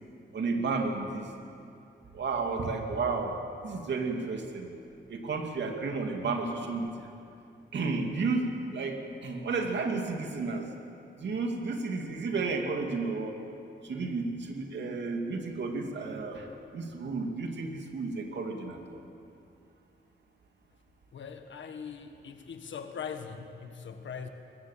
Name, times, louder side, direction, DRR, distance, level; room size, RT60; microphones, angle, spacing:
voice 1, 0.3-1.3 2.1-3.4 3.6-4.7 5.1-7.1 7.7-10.7 11.2-13.3 13.8-19.0, right 3 dB, 70° right, 3 dB, 2.7 m, -32 dB
voice 2, 21.1-24.3, left 6 dB, 85° left, 6 dB, 1.5 m, -41 dB
22.5 x 20.0 x 7.5 m, 2.6 s
wide cardioid pair, 165°, 19 cm